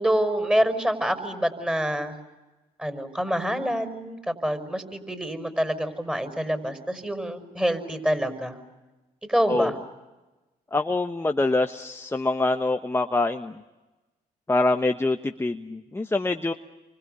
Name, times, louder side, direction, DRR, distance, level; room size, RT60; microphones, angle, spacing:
voice 1, 0.0-2.2 2.8-8.6 9.3-9.8, equal, 5° right, 8 dB, 5.8 m, -26 dB
voice 2, 10.7-13.5 14.5-16.5, left 2 dB, 15° left, 7 dB, 1.1 m, -25 dB
30.0 x 25.0 x 6.8 m, 1.1 s
supercardioid pair, 60°, 17 cm